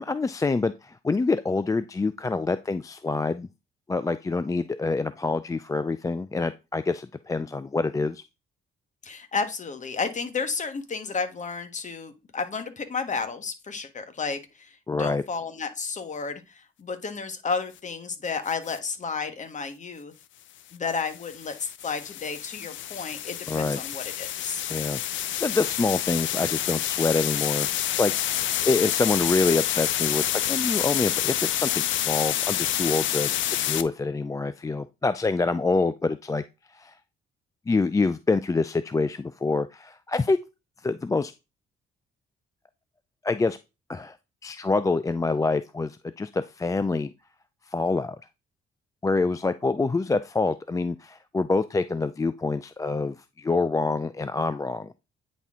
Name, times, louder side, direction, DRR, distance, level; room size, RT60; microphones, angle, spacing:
voice 1, 0.0-3.5 3.9-8.2 14.9-15.2 23.5-23.8 24.7-36.4 36.7-36.9 37.7-40.4 40.8-41.3 43.2-43.6 43.9-44.2 44.4-47.1 47.7-48.2 49.0-54.9, left 3 dB, 15° left, 12 dB, 0.4 m, -26 dB
voice 2, 9.0-20.1 20.7-24.6, left 5 dB, 40° left, 9 dB, 1.4 m, -32 dB
sound 1, 18.5-18.8 20.9-33.8, left 12 dB, 70° left, 0.6 m, -28 dB
9.1 x 4.3 x 3.7 m, 0.26 s
cardioid pair, 90°, 20 cm